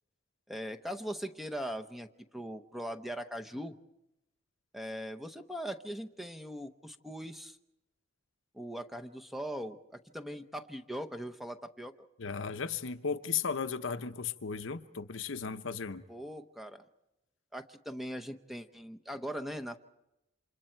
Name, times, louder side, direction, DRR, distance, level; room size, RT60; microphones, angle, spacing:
voice 1, 0.5-3.8 4.7-7.6 8.5-11.9 16.1-16.8 17.5-19.8, equal, ahead, 0.8 m, -40 dB
voice 2, 12.2-16.0, left 6 dB, 70° left, 0.8 m, -35 dB
29.5 x 27.0 x 4.5 m
head